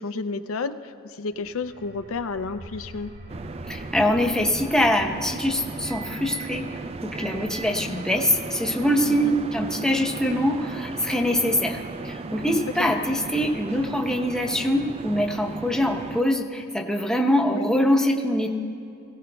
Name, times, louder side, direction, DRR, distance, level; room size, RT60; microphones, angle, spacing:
voice 1, 0.0-3.1 9.0-9.4 12.8-12.9 17.5-17.7, left 4 dB, 80° left, 10 dB, 0.5 m, -31 dB
sound 1, 1.3-12.8, equal, 65° right, 4.0 m, -46 dB
sound 2, 3.3-16.2, right 3 dB, 30° right, 0.3 m, -36 dB
voice 2, 3.7-18.5, equal, 5° left, 1 dB, 0.8 m, -24 dB
22.0 x 16.5 x 2.3 m, 2.6 s
head